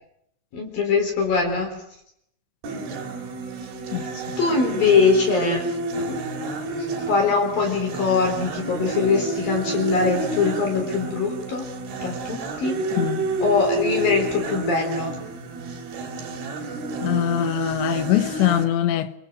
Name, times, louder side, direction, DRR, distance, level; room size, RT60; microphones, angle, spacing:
voice 1, 0.5-1.7 4.4-5.7 6.0-6.2 7.1-11.6 12.0-12.8 13.4-15.2, left 4 dB, 55° left, 5.4 m, -22 dB
sound 1, 2.6-18.7, right 3 dB, 65° right, 5.0 m, -30 dB
voice 2, 13.0-13.3 17.0-19.1, left 12 dB, 90° left, 3.5 m, -22 dB
26.0 x 24.5 x 7.9 m
omnidirectional pair, 5.0 m